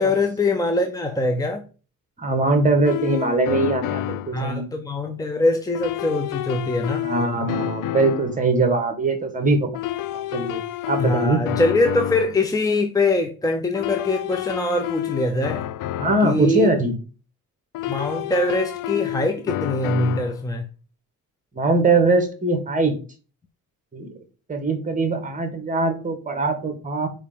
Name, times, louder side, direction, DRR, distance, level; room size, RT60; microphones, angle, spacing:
voice 1, 0.0-1.6 4.3-7.1 11.0-15.6 16.2-16.7 17.9-20.7, left 2 dB, 10° left, 5 dB, 0.7 m, -23 dB
voice 2, 2.2-4.6 7.0-11.4 16.0-16.9 21.5-23.0 23.9-24.1 24.5-27.1, right 2 dB, 25° right, 6 dB, 1.8 m, -22 dB
sound 1, 2.8-4.4 5.7-8.4 9.7-12.4 13.7-16.4 17.7-20.4, left 14 dB, 70° left, 0.5 m, -29 dB
5.3 x 5.0 x 5.2 m, 0.35 s
cardioid pair, 135°, 34 cm